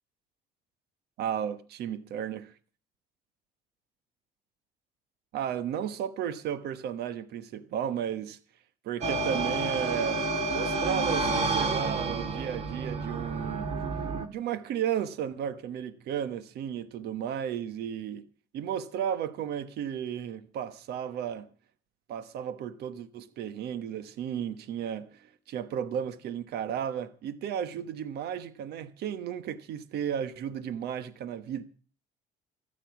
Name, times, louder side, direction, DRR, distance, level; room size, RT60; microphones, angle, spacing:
voice 1, 1.2-2.6 5.3-8.4 8.8-13.7 14.3-18.3 18.5-21.5 22.1-31.6, right 9 dB, 75° right, 1.3 m, -34 dB
sound 1, 9.0-14.3, right 3 dB, 40° right, 2.0 m, -30 dB
14.5 x 10.0 x 7.2 m
cardioid pair, 110°, 17 cm